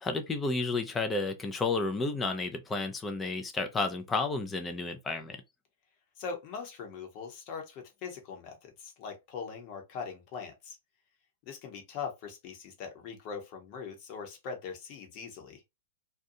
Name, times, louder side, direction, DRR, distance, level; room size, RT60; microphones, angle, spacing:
voice 1, 0.0-5.4, left 3 dB, 15° left, 0.5 m, -31 dB
voice 2, 6.2-10.8 11.5-15.6, left 5 dB, 45° left, 1.0 m, -41 dB
2.6 x 2.2 x 2.7 m
hypercardioid pair, 130°, 0 cm